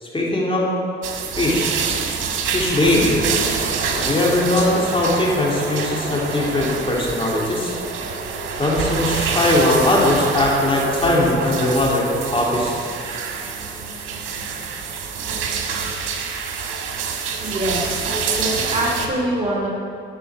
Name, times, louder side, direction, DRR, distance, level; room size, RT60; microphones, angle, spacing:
voice 1, 0.0-0.7 1.4-1.9 2.5-3.3 4.0-7.7 8.6-12.8, left 1 dB, 25° left, -4 dB, 2.8 m, -20 dB
sound 1, 1.0-19.1, right 5 dB, 85° right, 1.5 m, -26 dB
voice 2, 17.4-19.7, right 1 dB, 30° right, -3 dB, 2.6 m, -24 dB
11.5 x 6.1 x 8.4 m, 2.6 s
cardioid pair, 90°, 20 cm